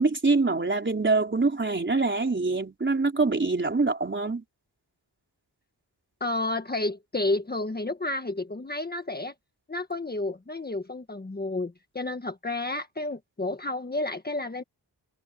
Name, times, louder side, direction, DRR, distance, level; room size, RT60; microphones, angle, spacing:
voice 1, 0.0-4.4, right 3 dB, 25° right, 4.0 m, -24 dB
voice 2, 6.2-9.3 9.7-14.6, left 2 dB, 20° left, 1.5 m, -31 dB
wide cardioid pair, 130°, 43 cm